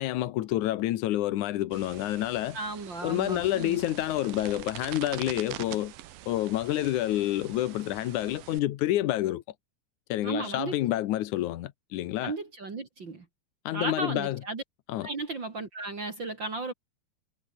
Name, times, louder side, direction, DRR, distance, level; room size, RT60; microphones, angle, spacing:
voice 1, 0.0-2.6 3.0-5.9 6.3-9.4 10.1-12.3 13.7-14.4 14.9-15.1, left 14 dB, 75° left, 1.9 m, -28 dB
sound 1, 1.7-8.6, right 14 dB, 70° right, 2.8 m, -44 dB
voice 2, 2.5-3.8 10.2-10.8 12.2-13.3 13.7-14.6 15.0-16.7, right 3 dB, 35° right, 2.4 m, -35 dB
omnidirectional pair, 4.6 m